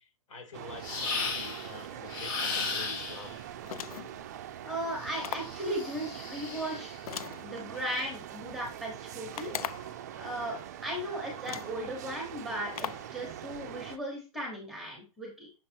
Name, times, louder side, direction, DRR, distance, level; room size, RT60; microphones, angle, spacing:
voice 1, 0.0-3.4, left 4 dB, 60° left, 6 dB, 1.9 m, -47 dB
sound 1, 0.5-14.0, right 10 dB, 30° right, 0.4 m, -43 dB
sound 2, 0.8-1.7 2.1-3.3 5.0-6.9, left 4 dB, 35° left, 1.4 m, -35 dB
sound 3, 3.6-4.2 5.2-5.6 7.1-8.1 9.3-10.0 10.9-11.0 11.4-11.8 12.7-13.1, left 9 dB, 80° left, 0.5 m, -39 dB
voice 2, 4.6-6.9 7.4-9.5 10.1-15.5, right 1 dB, ahead, -1 dB, 1.1 m, -37 dB
6.4 x 3.5 x 4.4 m, 0.31 s
hypercardioid pair, 170°, 19 cm